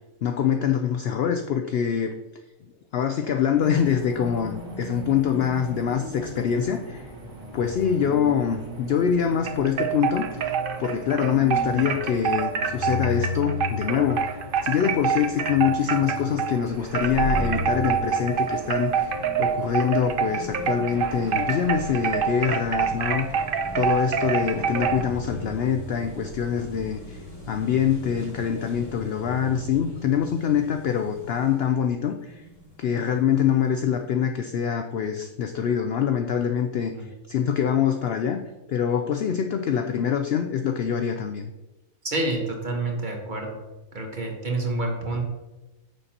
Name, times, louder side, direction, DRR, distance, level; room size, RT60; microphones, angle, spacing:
voice 1, 0.2-2.1 2.9-7.1 7.5-10.5 10.8-14.4 14.6-23.3 23.7-27.2 27.5-32.5 32.8-38.4 38.7-41.5, left 8 dB, 65° left, 6 dB, 0.6 m, -24 dB
sound 1, 3.6-21.7, left 2 dB, 75° right, 2.1 m, -37 dB
sound 2, 9.4-16.6 16.9-25.0, right 7 dB, 55° right, 0.6 m, -26 dB
sound 3, 16.7-34.1, equal, 25° left, 1.5 m, -38 dB
voice 2, 42.0-43.6 43.9-45.2, right 2 dB, 35° right, 1 dB, 1.3 m, -28 dB
9.2 x 6.9 x 2.9 m, 1.1 s
omnidirectional pair, 1.4 m